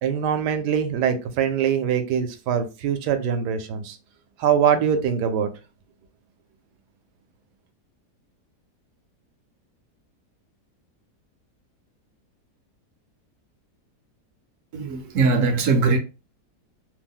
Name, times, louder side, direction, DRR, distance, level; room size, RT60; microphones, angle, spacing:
voice 1, 0.0-4.0 4.4-5.5, right 8 dB, 85° right, 1.2 m, -23 dB
voice 2, 14.7-16.0, right 4 dB, 65° right, 0.8 m, -20 dB
2.9 x 2.1 x 3.5 m
omnidirectional pair, 1.8 m